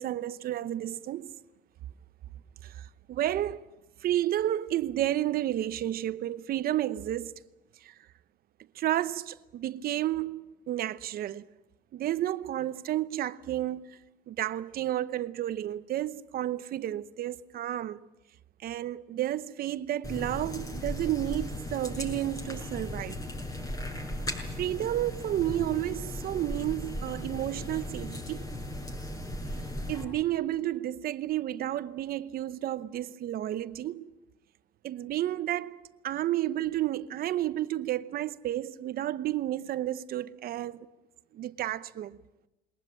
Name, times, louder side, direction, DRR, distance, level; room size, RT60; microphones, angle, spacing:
voice 1, 0.0-1.3 2.6-3.7 4.0-7.4 7.8-7.9 8.7-11.5 11.9-14.0 14.3-18.0 18.6-23.2 24.5-28.6 29.9-34.1 34.8-40.9 41.3-42.2, right 13 dB, 65° right, 0.9 m, -31 dB
sound 1, 20.0-30.0, left 1 dB, 20° left, 6.4 m, -37 dB
22.0 x 19.5 x 8.8 m
cardioid pair, 110°, 17 cm